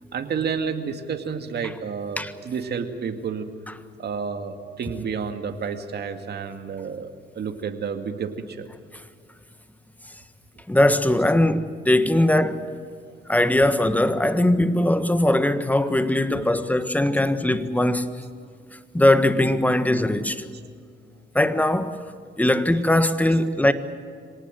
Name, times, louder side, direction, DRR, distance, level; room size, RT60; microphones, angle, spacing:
voice 1, 0.1-3.5 4.0-8.7 16.3-16.4 20.5-20.6 22.7-22.8 23.3-23.4, right 6 dB, 55° right, 2.3 m, -30 dB
voice 2, 10.7-12.7 13.3-18.2 18.7-20.4 21.3-22.0 22.4-23.7, left 1 dB, 10° left, 1.5 m, -20 dB
25.5 x 18.5 x 7.8 m
cardioid pair, 90°, 20 cm